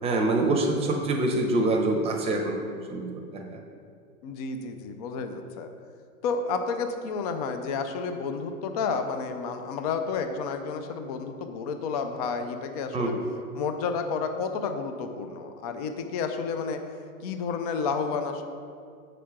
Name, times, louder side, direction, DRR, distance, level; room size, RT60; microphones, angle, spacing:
voice 1, 0.0-3.6 12.9-13.1, right 2 dB, 15° right, 1 dB, 0.7 m, -26 dB
voice 2, 4.2-5.7 6.2-13.1 13.6-16.8 17.2-18.4, left 5 dB, 30° left, 6 dB, 0.4 m, -31 dB
6.4 x 5.0 x 5.8 m, 2.3 s
hypercardioid pair, 125°, 45 cm